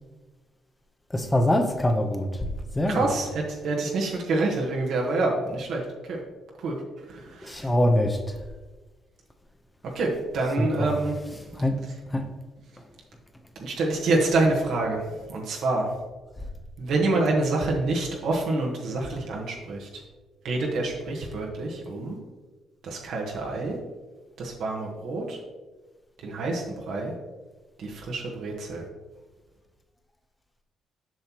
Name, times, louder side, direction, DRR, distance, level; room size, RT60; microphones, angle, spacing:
voice 1, 1.1-2.5 2.7-3.1 7.4-8.2 10.6-11.0 11.6-11.8 12.1-12.2, left 1 dB, 15° left, 6 dB, 0.8 m, -24 dB
voice 2, 2.9-6.2 6.6-6.8 7.1-7.7 9.9-11.5 11.8-12.0 13.6-15.9 16.8-20.0 20.4-22.2 22.8-23.8 24.4-25.4 26.2-27.1 27.8-28.9, right 2 dB, 75° right, -1 dB, 1.2 m, -27 dB
7.4 x 5.8 x 2.9 m, 1.2 s
cardioid pair, 90°, 0 cm